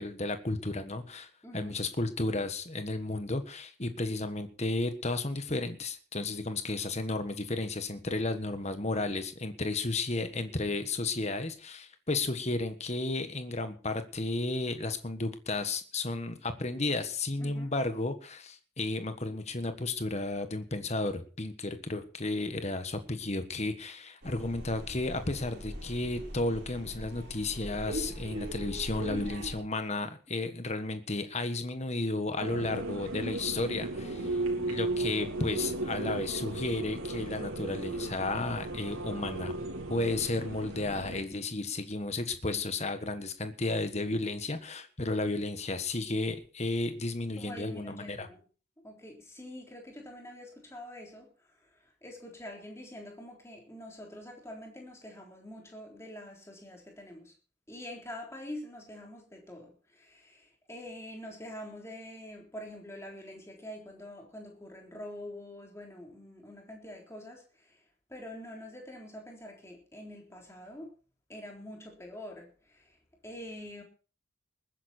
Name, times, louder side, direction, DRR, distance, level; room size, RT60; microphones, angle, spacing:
voice 1, 0.0-34.4 34.7-39.5 39.9-48.3, left 2 dB, 35° left, 9 dB, 1.5 m, -33 dB
voice 2, 1.4-1.8 17.4-17.7 34.0-34.8 42.4-42.6 47.4-48.4 48.8-51.3 52.0-57.3 57.7-67.4 68.1-70.9 71.3-72.5 73.2-73.8, left 1 dB, 15° left, 1 dB, 3.7 m, -45 dB
sound 1, 24.2-29.6, right 1 dB, 55° right, 5.9 m, -40 dB
sound 2, 32.4-41.2, right 2 dB, 85° right, 3.5 m, -35 dB
20.5 x 9.9 x 4.4 m, 0.37 s
head